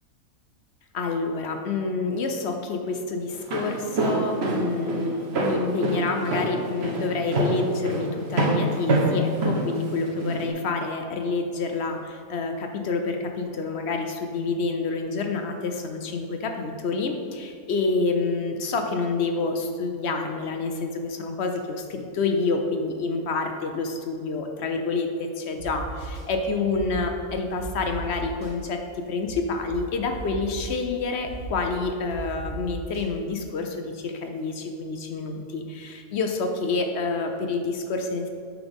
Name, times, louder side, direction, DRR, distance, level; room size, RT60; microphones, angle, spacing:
voice 1, 0.9-38.3, left 3 dB, 60° left, 5 dB, 0.8 m, -28 dB
Walk footsteps, 3.3-10.5, right 2 dB, 50° right, 1.2 m, -26 dB
sound 1, 25.6-26.2 26.7-27.1 27.6-28.5 29.3-29.4 29.7-29.8 30.1-30.8 31.2-31.6 32.1-33.0, right 2 dB, 25° right, 2.0 m, -37 dB
8.7 x 6.1 x 3.5 m, 2.2 s
omnidirectional pair, 1.5 m